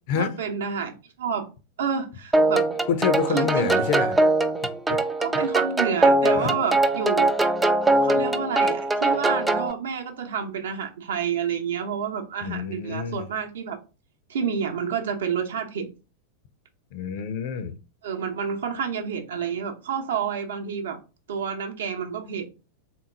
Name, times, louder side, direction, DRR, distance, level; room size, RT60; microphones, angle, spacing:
voice 1, 0.1-1.5 1.8-2.7 3.3-3.7 5.2-7.4 8.0-13.8 14.3-15.9 18.0-21.0 21.3-22.5, right 7 dB, 65° right, 0.8 m, -29 dB
sound 1, 2.3-9.7, right 2 dB, 10° right, 0.4 m, -22 dB
voice 2, 2.9-4.2 4.9-5.0 5.3-5.5 6.4-6.6 12.4-13.3 16.9-17.8, left 7 dB, 45° left, 0.5 m, -27 dB
3.6 x 3.0 x 3.8 m
figure-of-eight pair, 90°, 0 cm